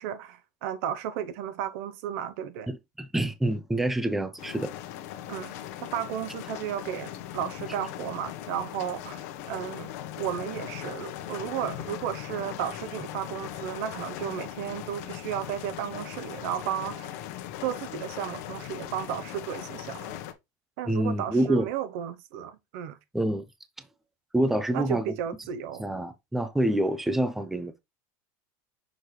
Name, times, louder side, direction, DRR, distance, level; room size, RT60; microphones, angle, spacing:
voice 1, 0.0-2.7 5.3-5.5 5.8-17.1 17.6-20.2 20.8-23.0 24.7-25.9, right 10 dB, 60° right, 0.9 m, -34 dB
voice 2, 2.7-4.7 20.9-21.6 23.1-23.4 24.3-25.0 25.8-27.8, right 1 dB, 5° right, 0.5 m, -27 dB
sound 1, 4.4-20.3, left 12 dB, 65° left, 1.0 m, -39 dB
6.4 x 4.5 x 3.2 m
supercardioid pair, 155°, 9 cm